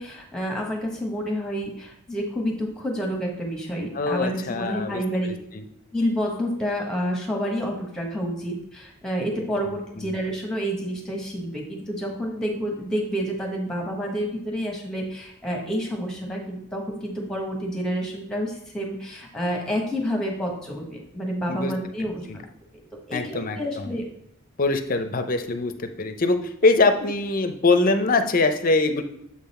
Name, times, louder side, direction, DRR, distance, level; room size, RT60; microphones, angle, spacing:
voice 1, 0.0-5.3 5.9-22.4 23.1-24.0, equal, 5° left, 0 dB, 1.1 m, -29 dB
voice 2, 3.9-5.6 9.4-9.5 10.0-10.1 21.5-21.7 22.3-22.4 23.1-23.9 24.6-29.0, left 3 dB, 40° left, 8 dB, 0.5 m, -23 dB
7.3 x 3.9 x 4.2 m, 0.76 s
head